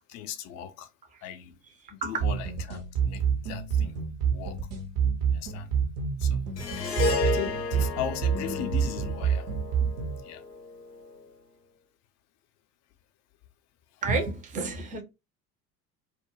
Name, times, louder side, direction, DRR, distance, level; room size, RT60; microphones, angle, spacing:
voice 1, 0.1-0.9 1.2-1.6 1.9-4.0 4.3-4.7 5.3-5.7 6.2-6.8 7.2-9.5 10.2-10.4 13.9-14.0, left 10 dB, 35° left, 0.5 m, -38 dB
sound 1, 2.2-10.2, right 7 dB, 60° right, 0.8 m, -28 dB
Harp, 6.6-11.0, left 3 dB, 90° left, 0.6 m, -32 dB
voice 2, 14.0-15.0, right 3 dB, 15° right, 0.5 m, -29 dB
2.3 x 2.1 x 3.0 m
figure-of-eight pair, 70°, 47 cm